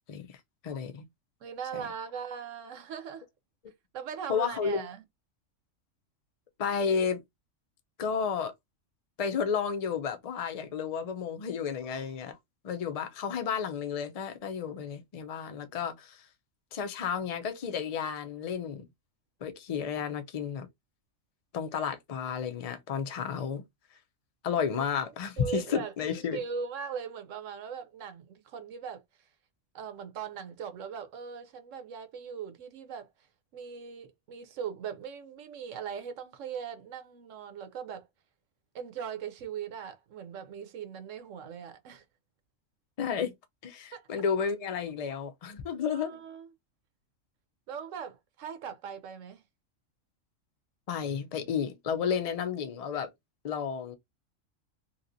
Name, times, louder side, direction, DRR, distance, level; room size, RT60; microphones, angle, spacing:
voice 1, 0.6-1.0 1.7-1.8 4.3-4.8 6.6-7.2 8.0-8.5 9.2-12.4 12.6-16.2 16.7-18.9 19.4-20.7 21.5-23.6 24.4-26.4 43.0-43.3 43.6-46.2 50.9-53.1 53.4-53.9, left 7 dB, 55° left, 0.4 m, -32 dB
voice 2, 1.4-3.3 3.9-5.0 24.7-24.8 25.4-25.9 26.3-29.0 29.7-33.1 33.5-38.1 38.7-42.0 43.9-44.1 45.9-46.5 47.7-49.4, right 7 dB, 75° right, 1.0 m, -39 dB
3.1 x 2.8 x 2.5 m
omnidirectional pair, 1.4 m